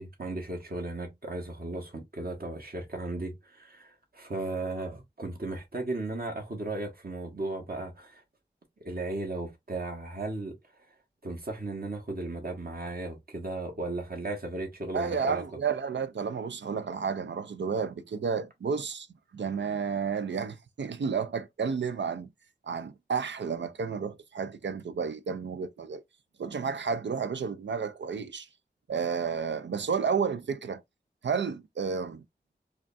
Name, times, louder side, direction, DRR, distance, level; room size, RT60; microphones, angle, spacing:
voice 1, 0.0-8.2 8.8-10.5 11.2-15.4, right 2 dB, 55° right, 1.3 m, -35 dB
voice 2, 14.9-19.1 19.3-22.3 22.6-26.0 26.4-28.5 28.9-30.8 31.2-32.2, right 6 dB, 85° right, 0.4 m, -31 dB
4.9 x 2.3 x 2.5 m
wide cardioid pair, 50°, 18 cm